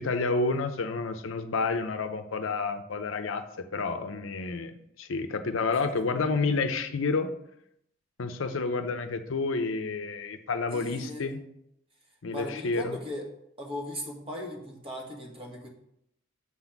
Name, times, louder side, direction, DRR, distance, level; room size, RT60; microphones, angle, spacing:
voice 1, 0.0-7.3 8.2-11.4 12.2-13.0, left 3 dB, 70° left, 8 dB, 0.6 m, -30 dB
voice 2, 10.7-11.3 12.3-13.3 13.6-15.7, left 1 dB, 25° right, 0 dB, 1.5 m, -38 dB
7.3 x 4.1 x 5.8 m, 0.77 s
head